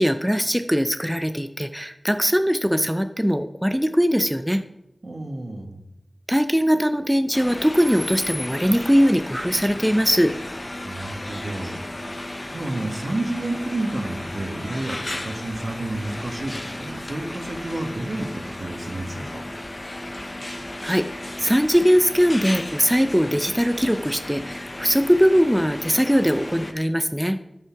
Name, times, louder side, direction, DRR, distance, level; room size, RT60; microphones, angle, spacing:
voice 1, 0.0-4.6 6.3-10.3 20.8-27.4, equal, 5° right, 8 dB, 0.6 m, -20 dB
voice 2, 5.0-5.8 10.8-12.2 12.5-19.4, right 2 dB, 65° right, 4 dB, 1.7 m, -30 dB
sound 1, 7.3-26.7, left 1 dB, 40° left, 1.0 m, -34 dB
12.0 x 5.5 x 5.9 m, 0.89 s
wide cardioid pair, 45°, 0 cm